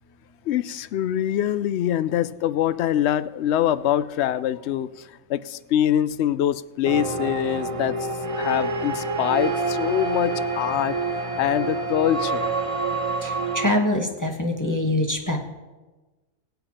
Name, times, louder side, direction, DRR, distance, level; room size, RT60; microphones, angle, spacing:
voice 1, 0.5-8.1 8.4-11.0 11.4-12.5, left 11 dB, 65° left, 15 dB, 0.7 m, -24 dB
sound 1, 6.8-13.7, right 3 dB, 25° right, 0.9 m, -27 dB
voice 2, 13.2-15.4, left 1 dB, 15° left, 1 dB, 1.3 m, -24 dB
23.0 x 8.2 x 4.3 m, 1.2 s
omnidirectional pair, 1.5 m